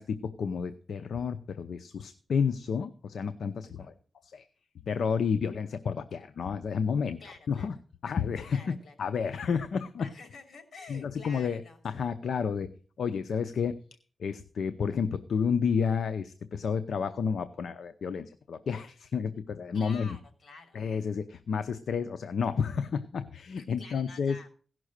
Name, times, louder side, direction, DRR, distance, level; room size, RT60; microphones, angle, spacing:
voice 1, 0.0-3.9 4.2-4.4 4.9-7.2 7.5-7.7 8.0-10.1 10.9-13.8 14.2-20.2 20.7-24.4, left 6 dB, 85° left, 11 dB, 0.6 m, -31 dB
voice 2, 3.6-3.9 7.2-7.7 8.5-8.9 10.0-11.8 19.7-20.8 23.5-24.5, left 4 dB, 70° left, 5 dB, 3.2 m, -49 dB
16.5 x 6.2 x 6.5 m, 0.42 s
cardioid pair, 60°, 0 cm